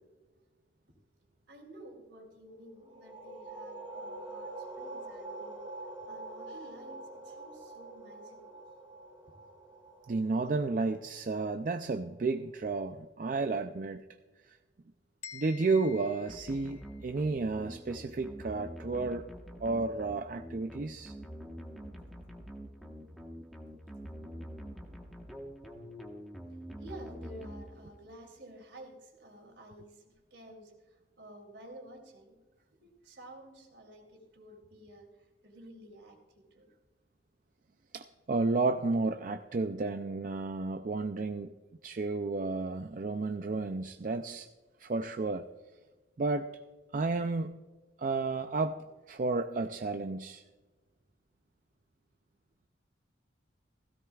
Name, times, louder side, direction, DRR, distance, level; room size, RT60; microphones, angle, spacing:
voice 1, 1.5-5.6 6.1-8.6 9.3-9.4 26.5-32.4 32.8-36.7, right 1 dB, 70° right, 2 dB, 3.0 m, -52 dB
sound 1, 2.8-12.2, right 2 dB, 30° right, 2.7 m, -46 dB
voice 2, 10.1-14.0 14.5-14.6 15.3-19.2 19.6-21.1 37.9-41.5 41.8-44.5 44.8-45.5 46.2-46.5 46.9-47.6 48.0-50.4, right 3 dB, 45° right, 7 dB, 0.4 m, -32 dB
sound 2, 15.2-17.2, left 9 dB, 35° left, 0.8 m, -50 dB
sound 3, 16.3-28.1, equal, ahead, 1.2 m, -46 dB
16.5 x 16.0 x 2.4 m, 1.3 s
head